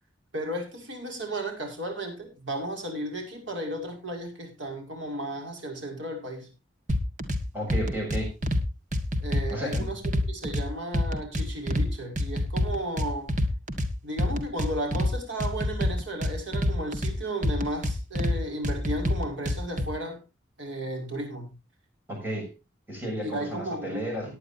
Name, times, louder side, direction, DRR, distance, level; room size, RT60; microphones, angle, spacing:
voice 1, 0.3-6.5 9.2-10.0 10.3-13.3 14.0-20.2 20.6-21.5 23.2-24.0, right 1 dB, 80° right, 5.7 m, -34 dB
sound 1, 6.9-7.4 7.7-8.6 8.9-10.6 10.9-11.9 12.2-13.9 14.2-15.1 15.4-17.1 17.4-18.4 18.6-19.9, left 1 dB, 40° right, 1.8 m, -26 dB
voice 2, 7.5-8.4 9.5-9.9 22.1-22.5 22.9-24.3, equal, 10° right, 7.1 m, -33 dB
18.5 x 10.0 x 2.7 m
head